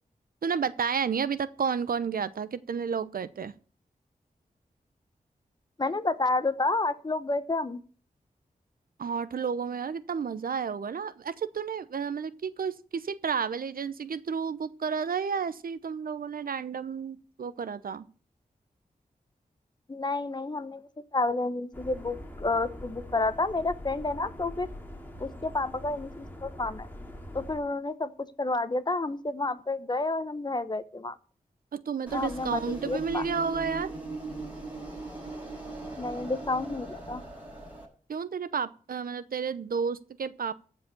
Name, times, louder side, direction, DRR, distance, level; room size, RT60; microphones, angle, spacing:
voice 1, 0.4-3.5 9.0-18.1 31.7-33.9 38.1-40.5, right 6 dB, 75° right, 0.7 m, -31 dB
voice 2, 5.8-7.8 19.9-24.7 25.2-26.9 27.3-31.2 32.1-33.2 36.0-37.2, left 2 dB, 30° left, 1.0 m, -30 dB
sound 1, 21.7-27.6, left 1 dB, 15° left, 2.3 m, -43 dB
sound 2, 32.1-37.8, right 2 dB, 10° right, 6.7 m, -39 dB
14.0 x 4.9 x 6.8 m
wide cardioid pair, 75°, 15 cm